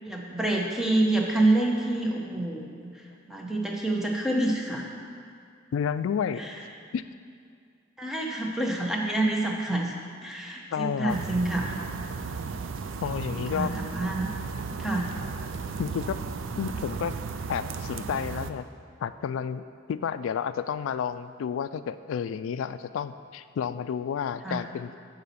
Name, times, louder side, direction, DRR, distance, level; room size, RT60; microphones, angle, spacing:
voice 1, 0.0-2.9 3.3-4.8 6.4-6.5 8.0-9.9 10.2-11.7 13.2-14.3 14.8-15.1 24.4-24.6, right 2 dB, ahead, -2 dB, 0.9 m, -27 dB
voice 2, 5.7-6.4 6.9-7.0 10.7-11.2 13.0-13.8 15.8-16.2 16.6-17.1 17.5-18.6 19.0-24.9, left 7 dB, 80° left, 13 dB, 0.3 m, -31 dB
sound 1, 11.1-18.5, right 4 dB, 80° right, 0.4 m, -35 dB
8.6 x 4.1 x 7.0 m, 2.3 s
head